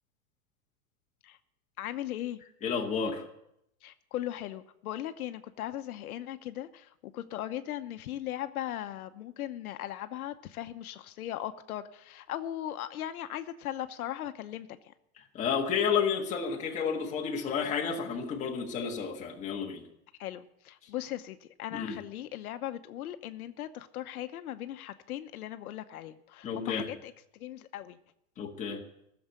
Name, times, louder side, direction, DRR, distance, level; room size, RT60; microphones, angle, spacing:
voice 1, 1.8-2.4 3.8-14.7 20.2-27.1 27.4-28.0, left 12 dB, 85° left, 10 dB, 1.0 m, -38 dB
voice 2, 2.6-3.2 15.3-19.8 21.7-22.0 26.4-26.9 28.4-28.8, left 6 dB, 15° left, 0 dB, 1.5 m, -31 dB
15.5 x 7.2 x 9.0 m, 0.79 s
supercardioid pair, 170°, 43 cm